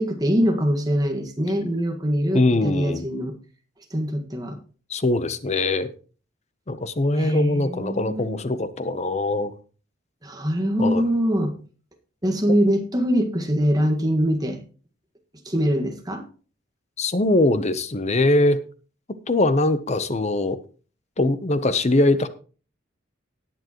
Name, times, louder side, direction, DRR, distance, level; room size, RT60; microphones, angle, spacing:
voice 1, 0.0-3.3 3.9-4.6 7.2-8.4 10.2-11.5 12.2-14.6 15.4-16.2, equal, 20° right, 1.6 m, -23 dB
voice 2, 2.3-3.0 4.9-5.9 6.7-9.5 10.8-11.0 17.0-18.6 19.3-20.6 21.2-22.3, left 2 dB, 35° left, 0.8 m, -22 dB
18.5 x 7.3 x 3.0 m
head